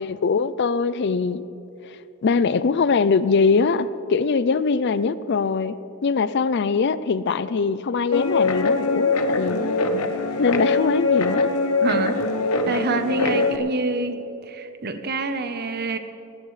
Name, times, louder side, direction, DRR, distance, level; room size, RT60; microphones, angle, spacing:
voice 1, 0.0-1.4 1.9-5.7 6.0-9.8 10.4-11.5, left 5 dB, 50° left, 15 dB, 0.4 m, -22 dB
Guitar, 8.1-13.6, left 3 dB, 80° left, 1.0 m, -22 dB
voice 2, 11.8-12.2 12.7-14.1 14.4-16.0, right 3 dB, 45° right, 8 dB, 0.9 m, -26 dB
19.0 x 18.0 x 3.3 m, 2.8 s
head